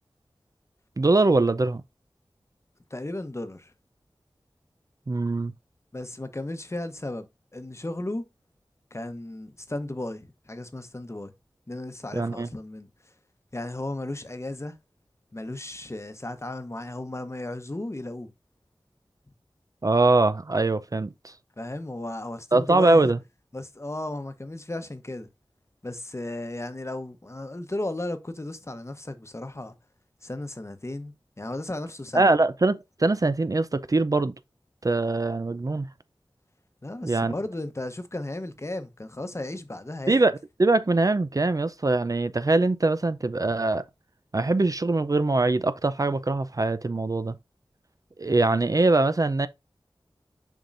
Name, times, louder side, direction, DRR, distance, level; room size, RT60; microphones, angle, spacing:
voice 1, 1.0-1.8 5.1-5.5 12.1-12.5 19.8-21.3 22.5-23.2 32.1-34.3 34.8-35.9 37.0-37.3 40.1-40.3 40.6-43.8 44.3-47.3 48.2-49.5, right 2 dB, 40° right, 0.5 m, -22 dB
voice 2, 2.9-3.7 5.9-7.3 7.5-8.2 8.9-11.3 11.7-12.9 13.5-14.8 15.3-18.3 21.6-23.1 23.5-25.3 25.8-29.7 30.2-32.3 36.8-40.3, left 2 dB, 30° left, 1.0 m, -35 dB
7.3 x 5.3 x 2.5 m
wide cardioid pair, 50°, 9 cm